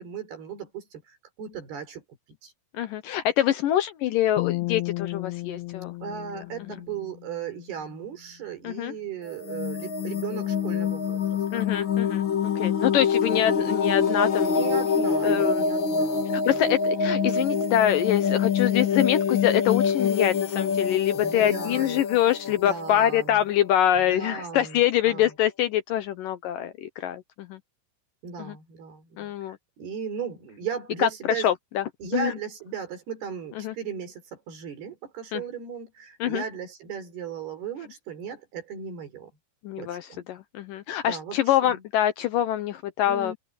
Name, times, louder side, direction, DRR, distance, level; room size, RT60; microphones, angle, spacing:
voice 1, 0.0-2.0 2.4-2.5 6.0-11.2 11.5-11.7 14.6-16.7 21.1-22.0 22.6-23.4 23.9-25.3 28.2-31.5 32.0-39.3 39.8-40.3 41.0-41.8 43.1-43.4, right 7 dB, 75° right, 6.3 m, -36 dB
voice 2, 2.7-5.9 8.6-8.9 11.5-14.8 15.2-15.7 16.5-27.6 28.4-28.6 29.2-29.6 31.0-31.1 31.4-31.8 32.1-32.3 33.6-33.7 35.3-35.4 36.2-36.4 39.6-43.3, left 11 dB, 75° left, 2.2 m, -25 dB
sound 1, 4.4-7.7, left 22 dB, 90° left, 2.6 m, -33 dB
sound 2, 9.3-23.9, left 6 dB, 45° left, 1.8 m, -26 dB
omnidirectional pair, 4.6 m